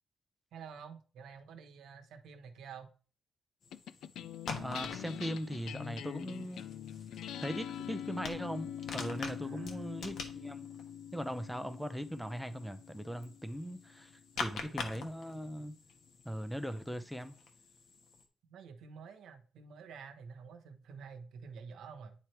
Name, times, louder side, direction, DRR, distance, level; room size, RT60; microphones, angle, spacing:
voice 1, 0.5-2.9 9.4-9.9 14.3-14.5 18.5-22.1, right 6 dB, 70° right, 1.1 m, -49 dB
sound 1, 3.6-18.2, left 4 dB, 55° left, 1.1 m, -47 dB
sound 2, 3.7-14.3, left 9 dB, 75° left, 0.4 m, -44 dB
voice 2, 4.6-6.7 7.4-10.7 11.1-14.1 14.4-15.7 16.2-17.4, equal, ahead, 0.6 m, -39 dB
9.8 x 3.3 x 4.5 m
cardioid pair, 160°, 0 cm